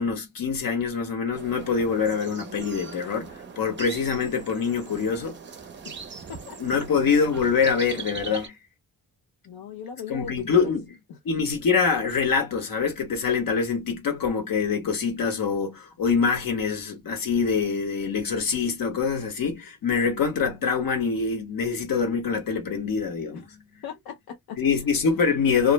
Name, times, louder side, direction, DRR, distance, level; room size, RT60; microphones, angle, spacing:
voice 1, 0.0-5.4 6.6-8.5 10.1-11.0 11.2-23.5 24.6-25.7, left 5 dB, 65° left, 1.1 m, -25 dB
sound 1, 1.3-8.5, right 5 dB, 30° right, 0.5 m, -41 dB
voice 2, 9.4-10.7 11.1-11.2 23.3-23.5 23.8-24.9, left 8 dB, 90° left, 0.5 m, -39 dB
2.4 x 2.0 x 3.0 m
wide cardioid pair, 125°, 36 cm